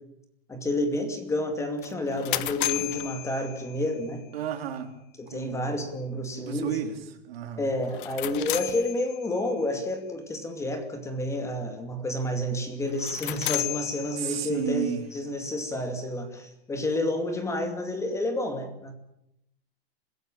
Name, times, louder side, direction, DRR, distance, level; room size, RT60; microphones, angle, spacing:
voice 1, 0.5-4.3 5.2-6.8 7.6-18.9, left 1 dB, 10° left, 7 dB, 2.5 m, -30 dB
sound 1, 1.8-4.1 7.8-9.5 12.9-14.7, left 16 dB, 60° left, 1.4 m, -33 dB
voice 2, 4.3-4.9 5.3-5.8 6.3-7.0 7.3-7.7 14.1-15.0, right 9 dB, 80° right, 5 dB, 4.2 m, -32 dB
25.5 x 16.5 x 8.8 m, 0.79 s
supercardioid pair, 165°, 30 cm